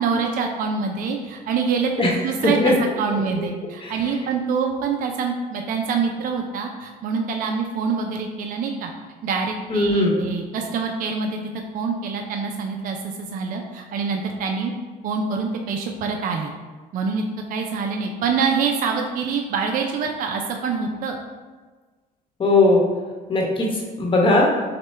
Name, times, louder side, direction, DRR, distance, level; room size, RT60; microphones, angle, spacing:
voice 1, 0.0-1.9 2.2-8.9 9.2-11.4 11.7-14.7 15.0-16.5 16.9-17.2 17.5-21.2, right 5 dB, 55° right, 3 dB, 0.5 m, -25 dB
voice 2, 9.7-10.2 22.4-22.8 23.3-23.7 24.0-24.5, left 2 dB, 30° left, -2 dB, 1.1 m, -18 dB
6.5 x 2.2 x 3.2 m, 1.4 s
cardioid pair, 110°, 17 cm